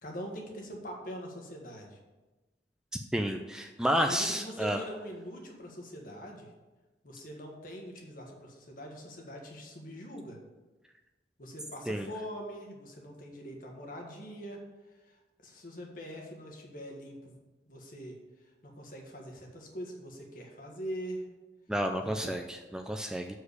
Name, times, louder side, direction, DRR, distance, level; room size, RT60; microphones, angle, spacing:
voice 1, 0.0-2.0 4.0-6.5 7.0-10.4 11.4-14.6 15.1-15.2 15.4-17.3 17.7-18.2 18.6-21.3 22.0-22.3, equal, 50° left, 1 dB, 1.5 m, -43 dB
voice 2, 3.1-4.8 11.9-12.1 21.7-23.4, equal, 5° right, 4 dB, 0.4 m, -31 dB
6.6 x 4.7 x 6.7 m, 1.1 s
head